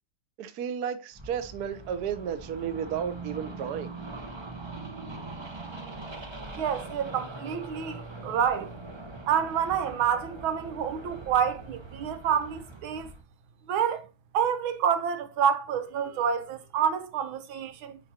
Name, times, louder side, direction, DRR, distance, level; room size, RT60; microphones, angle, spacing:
voice 1, 0.4-3.9, right 8 dB, 60° right, 1.1 m, -33 dB
sound 1, 1.1-13.2, right 3 dB, 30° right, 0.5 m, -42 dB
voice 2, 6.6-8.7 9.3-13.1 13.7-14.1 14.3-18.0, right 8 dB, 85° right, 1.7 m, -28 dB
9.6 x 4.6 x 2.8 m
omnidirectional pair, 2.2 m